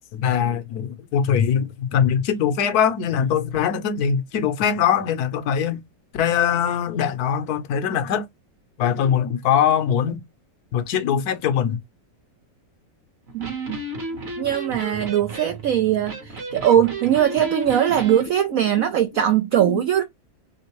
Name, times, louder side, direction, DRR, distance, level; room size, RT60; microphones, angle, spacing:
voice 1, 0.1-5.8 6.1-8.3 8.8-10.2 10.7-11.8 19.6-19.8, left 8 dB, 65° left, 1.2 m, -22 dB
Electric guitar, 13.3-18.3, right 2 dB, 40° right, 1.1 m, -33 dB
voice 2, 13.3-13.8 14.4-20.0, right 10 dB, 65° right, 0.8 m, -20 dB
3.8 x 3.5 x 3.0 m
omnidirectional pair, 2.0 m